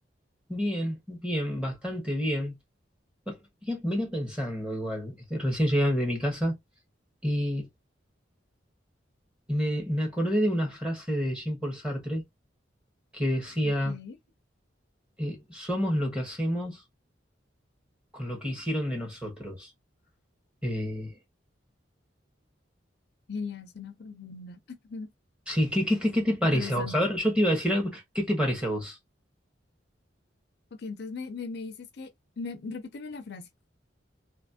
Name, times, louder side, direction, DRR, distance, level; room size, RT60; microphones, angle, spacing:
voice 1, 0.5-2.5 3.3-3.4 3.7-6.6 7.2-7.7 9.5-12.2 13.1-14.0 15.2-16.8 18.1-19.7 20.6-21.2 25.5-29.0, equal, 5° right, 1.3 m, -28 dB
voice 2, 13.6-14.2 23.3-25.1 26.5-27.0 30.8-33.5, left 4 dB, 60° left, 0.5 m, -39 dB
3.2 x 2.8 x 2.7 m
head